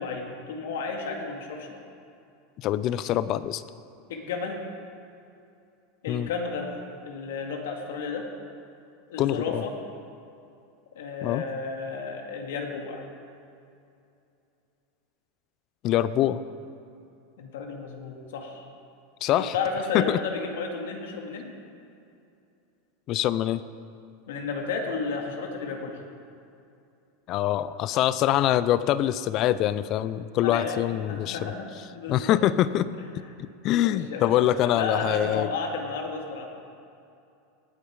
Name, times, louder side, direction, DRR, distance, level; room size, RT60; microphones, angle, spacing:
voice 1, 0.0-1.8 4.1-4.6 6.0-6.7 7.0-8.3 9.1-9.7 11.0-13.1 17.4-18.7 19.5-21.5 24.3-26.0 30.4-32.3 33.8-36.5, left 4 dB, 85° left, 2 dB, 2.0 m, -32 dB
voice 2, 2.6-3.6 6.1-6.3 9.2-9.6 11.2-11.4 15.8-16.4 19.2-19.6 19.9-20.2 23.1-23.6 27.3-31.5 32.1-32.9 33.6-35.5, left 12 dB, 40° left, 16 dB, 0.4 m, -24 dB
18.0 x 8.6 x 4.8 m, 2.6 s
supercardioid pair, 140°, 0 cm